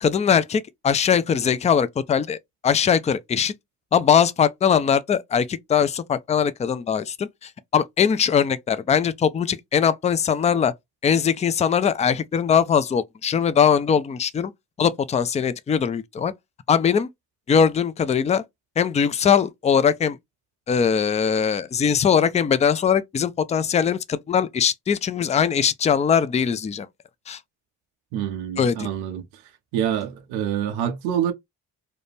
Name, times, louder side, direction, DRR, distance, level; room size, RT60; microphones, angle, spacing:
voice 1, 0.0-3.6 3.9-10.7 11.0-14.5 14.8-16.3 16.7-17.1 17.5-18.4 18.8-20.2 20.7-26.9 27.3-27.4 28.6-28.9, left 7 dB, 15° left, 0.3 m, -21 dB
voice 2, 28.1-29.2 29.7-31.3, right 10 dB, 90° right, 0.6 m, -26 dB
2.5 x 2.1 x 3.2 m
hypercardioid pair, 40°, 44 cm